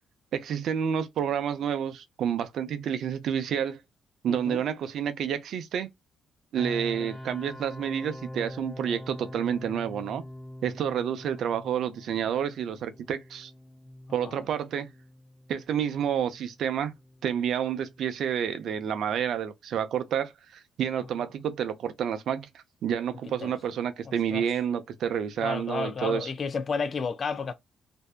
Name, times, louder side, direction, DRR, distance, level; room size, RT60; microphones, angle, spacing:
voice 1, 0.3-3.8 4.2-5.9 6.5-10.2 10.6-13.5 14.1-14.9 15.5-16.9 17.2-26.3, right 8 dB, 70° right, 0.5 m, -29 dB
voice 2, 4.3-4.6 14.2-14.4 23.4-23.5 24.3-24.4 25.4-27.5, left 5 dB, 45° left, 0.4 m, -31 dB
sound 1, 6.5-19.4, left 1 dB, 5° left, 0.8 m, -44 dB
2.6 x 2.2 x 2.2 m
cardioid pair, 90°, 0 cm